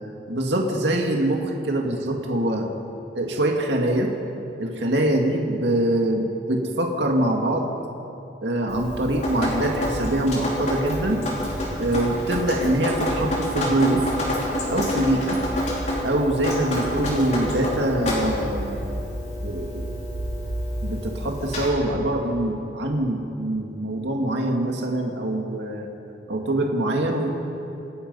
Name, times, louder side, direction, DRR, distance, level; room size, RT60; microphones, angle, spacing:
voice 1, 0.3-2.7 3.1-4.1 4.6-7.7 8.4-11.2 11.8-14.0 14.7-15.4 16.0-19.0 19.4-19.8 20.8-25.9 26.3-27.3, right 1 dB, 75° right, 1 dB, 2.1 m, -24 dB
Drip, 8.7-21.7, equal, 40° left, 4.8 m, -28 dB
29.0 x 16.5 x 5.5 m, 2.9 s
head